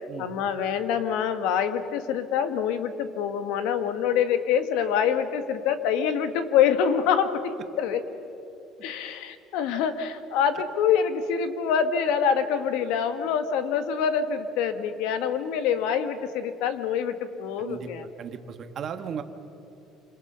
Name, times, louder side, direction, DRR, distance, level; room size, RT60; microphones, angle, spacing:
voice 1, 0.2-8.0 8.8-18.0, left 7 dB, 80° left, 9 dB, 1.7 m, -25 dB
voice 2, 17.6-17.9 18.2-19.2, right 7 dB, 40° right, 8 dB, 1.4 m, -36 dB
27.5 x 26.5 x 5.7 m, 2.9 s
cardioid pair, 160°, 0 cm